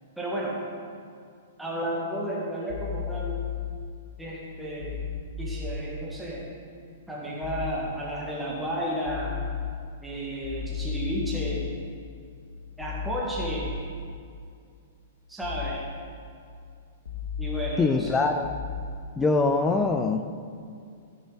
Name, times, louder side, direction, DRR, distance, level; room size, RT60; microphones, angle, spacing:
voice 1, 0.2-0.6 1.6-3.4 4.2-5.0 5.4-6.5 7.1-9.4 10.0-11.7 12.8-13.7 15.3-15.8 17.4-18.2, right 1 dB, 5° right, -6 dB, 1.9 m, -32 dB
sound 1, 2.7-3.7 4.8-5.7 7.4-7.7 9.1-9.7 10.4-11.7 12.8-13.7 15.4-15.7 17.1-17.7 18.4-18.8, left 7 dB, 65° left, 1.5 m, -33 dB
voice 2, 17.8-18.5 19.2-20.4, left 3 dB, 15° left, 7 dB, 0.5 m, -23 dB
15.0 x 6.8 x 4.0 m, 2.3 s
figure-of-eight pair, 105°, 0 cm